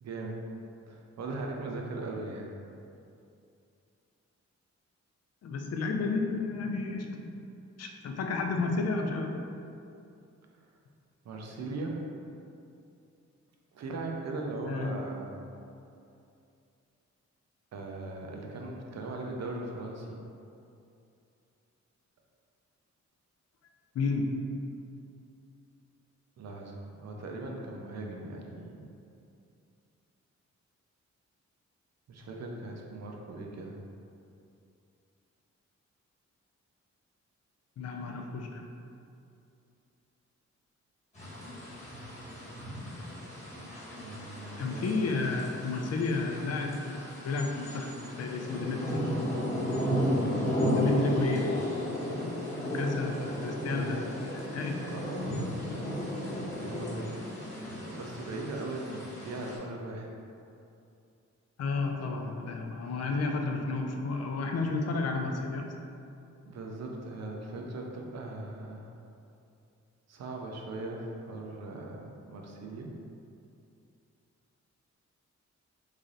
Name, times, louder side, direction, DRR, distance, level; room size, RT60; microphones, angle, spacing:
voice 1, 0.0-0.4 0.9-2.5 11.2-12.0 13.7-15.3 17.7-20.2 26.4-28.9 32.1-33.8 44.0-45.4 53.6-54.1 54.4-55.6 56.6-57.1 57.9-60.1 66.4-68.9 70.1-72.9, right 2 dB, 65° right, 0 dB, 0.5 m, -39 dB
voice 2, 5.4-7.3 7.8-9.3 14.7-15.0 23.9-24.4 37.8-38.6 44.6-49.2 50.7-51.5 52.1-54.0 54.5-54.8 61.6-65.7, left 3 dB, 60° left, 2 dB, 0.4 m, -32 dB
sound 1, 41.1-59.6, equal, 25° left, 1.0 m, -34 dB
3.2 x 2.7 x 3.8 m, 2.6 s
wide cardioid pair, 150°, 29 cm